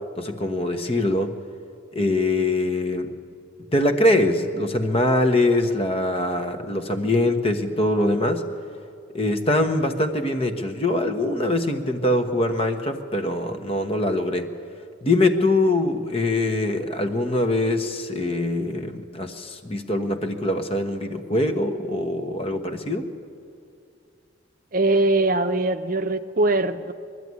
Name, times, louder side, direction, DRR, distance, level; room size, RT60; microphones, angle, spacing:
voice 1, 0.2-1.4 1.9-3.1 3.7-8.4 9.1-14.5 15.0-23.0, left 1 dB, 30° left, 7 dB, 1.2 m, -23 dB
voice 2, 24.7-26.9, right 2 dB, 45° right, 9 dB, 0.7 m, -21 dB
22.0 x 12.5 x 9.6 m, 2.4 s
head